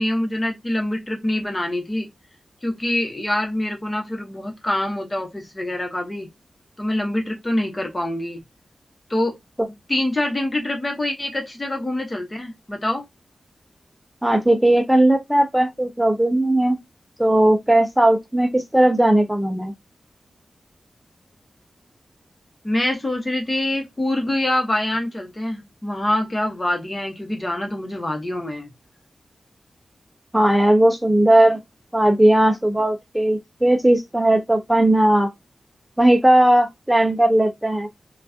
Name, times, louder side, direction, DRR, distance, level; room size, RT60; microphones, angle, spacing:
voice 1, 0.0-2.1 2.6-6.3 6.8-8.4 9.1-9.4 9.9-13.0 22.6-28.7, left 1 dB, 25° left, 1.1 m, -25 dB
voice 2, 14.2-16.8 17.2-19.7 30.3-31.6 31.9-35.3 36.0-37.9, right 1 dB, 5° right, 0.5 m, -17 dB
4.5 x 2.4 x 2.7 m
wide cardioid pair, 90°, 0 cm